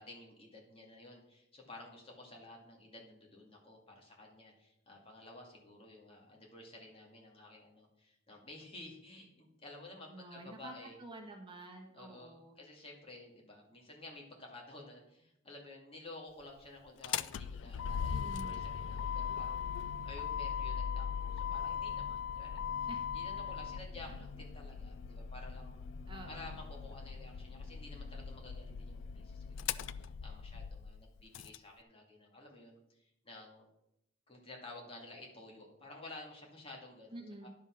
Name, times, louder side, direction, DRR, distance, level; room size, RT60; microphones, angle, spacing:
voice 1, 0.0-10.9 11.9-19.6 20.0-22.7 23.1-25.9 26.3-33.7 34.3-37.5, left 2 dB, 30° left, -1 dB, 2.3 m, -52 dB
voice 2, 10.1-10.7 11.0-12.6 18.1-18.6 22.9-23.0 24.0-24.1 26.1-26.5 37.1-37.5, right 1 dB, 25° right, 1 dB, 1.3 m, -49 dB
Motor vehicle (road), 16.9-31.6, left 7 dB, 65° left, 0.3 m, -39 dB
10.5 x 5.5 x 5.9 m, 0.81 s
head